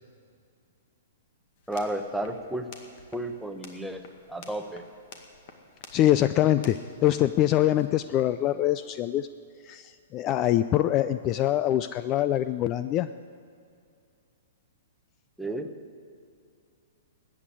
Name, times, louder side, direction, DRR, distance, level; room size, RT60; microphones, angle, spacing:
sound 1, 1.6-7.9, left 4 dB, 50° left, 1.9 m, -51 dB
voice 1, 1.7-2.7 3.1-4.0 4.3-4.8 15.4-15.7, right 1 dB, ahead, 5 dB, 1.0 m, -32 dB
voice 2, 5.9-9.3 9.7-13.1, left 13 dB, 30° left, 13 dB, 0.4 m, -24 dB
14.0 x 8.7 x 9.9 m, 2.4 s
hypercardioid pair, 135°, 0 cm